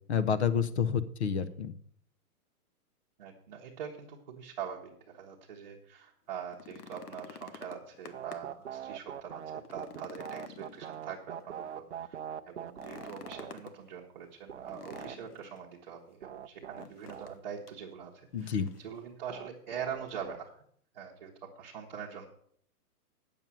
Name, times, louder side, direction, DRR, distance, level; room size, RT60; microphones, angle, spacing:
voice 1, 0.1-1.7 18.3-18.7, left 7 dB, 45° left, 15 dB, 0.8 m, -29 dB
voice 2, 3.2-12.2 12.5-20.6 20.9-22.3, right 7 dB, 30° right, -3 dB, 1.0 m, -43 dB
sound 1, 6.4-8.6 9.0-9.1 9.6-11.5 12.7-13.8 14.7-15.6 16.7-17.4 17.7-17.8 18.4-19.0 20.1-20.2, left 6 dB, 90° left, 1.4 m, -49 dB
sound 2, 8.1-13.5 14.5-15.1 16.2-17.3 19.3-20.4, right 9 dB, 50° right, 0.6 m, -42 dB
9.2 x 7.1 x 7.4 m, 0.64 s
hypercardioid pair, 180°, 45 cm